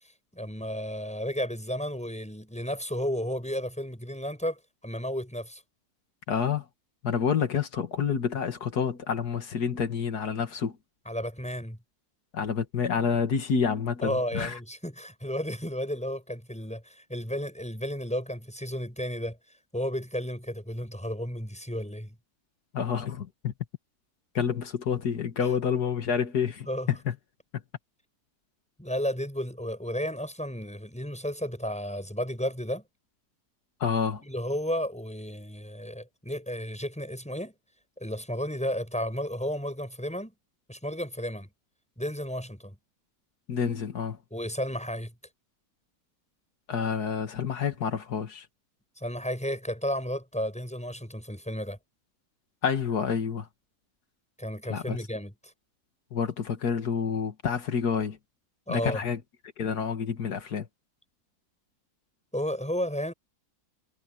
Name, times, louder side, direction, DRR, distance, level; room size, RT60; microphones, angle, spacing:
voice 1, 0.3-5.6 11.1-11.8 14.0-19.4 19.7-22.1 26.7-26.9 28.8-32.8 34.2-37.5 38.0-40.3 40.7-41.5 42.0-42.8 44.3-45.1 49.0-51.8 54.4-55.5 58.7-59.0 62.3-63.1, equal, 5° left, 7.1 m, -33 dB
voice 2, 6.3-6.7 7.0-10.8 12.3-14.6 22.7-23.5 24.3-27.2 33.8-34.2 43.5-44.2 46.7-48.5 52.6-53.5 54.7-55.0 56.1-58.2 58.7-59.2 59.6-60.7, left 7 dB, 85° left, 2.2 m, -28 dB
omnidirectional pair, 1.6 m